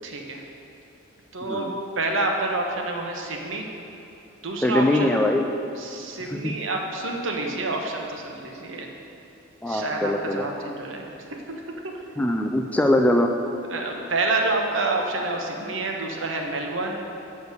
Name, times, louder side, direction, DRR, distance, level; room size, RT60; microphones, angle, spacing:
voice 1, 0.0-0.4 1.3-1.7 2.0-3.6 4.4-5.1 5.8-8.9 9.7-11.9 13.7-17.0, right 2 dB, 65° right, 2 dB, 1.0 m, -28 dB
voice 2, 4.6-5.5 6.2-6.5 9.6-10.4 12.2-13.3, left 1 dB, 5° left, 4 dB, 0.3 m, -22 dB
6.9 x 6.5 x 6.6 m, 2.9 s
head